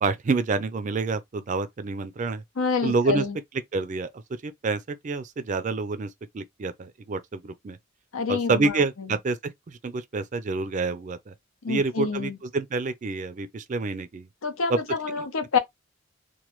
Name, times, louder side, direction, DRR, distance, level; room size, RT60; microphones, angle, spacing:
voice 1, 0.0-2.4 2.8-3.2 3.7-7.8 8.3-11.3 11.7-14.3 14.7-14.8, right 4 dB, 35° right, 0.3 m, -28 dB
voice 2, 2.6-3.4 8.1-8.7 11.6-12.4 14.4-15.6, left 5 dB, 90° left, 0.7 m, -27 dB
3.1 x 2.2 x 2.9 m
head